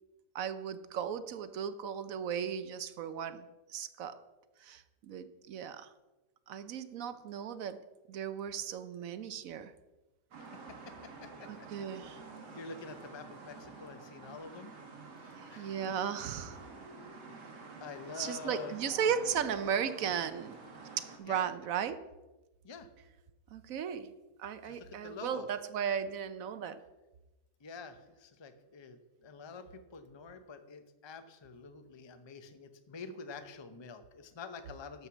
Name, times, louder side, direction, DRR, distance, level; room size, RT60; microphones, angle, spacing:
voice 1, 0.3-4.2 4.6-5.9 6.5-9.7 11.5-12.2 15.5-16.6 18.2-20.6 21.0-22.0 23.5-24.1 24.4-26.8, right 8 dB, 65° right, 12 dB, 0.9 m, -36 dB
sound 1, 10.3-21.2, right 4 dB, 80° right, 2.2 m, -49 dB
voice 2, 10.9-12.2 12.5-14.7 15.2-15.7 17.8-19.4 21.2-21.5 22.6-22.9 24.6-25.5 27.6-35.1, left 4 dB, 40° left, 9 dB, 0.3 m, -47 dB
12.0 x 4.7 x 7.0 m, 1.1 s
omnidirectional pair, 1.8 m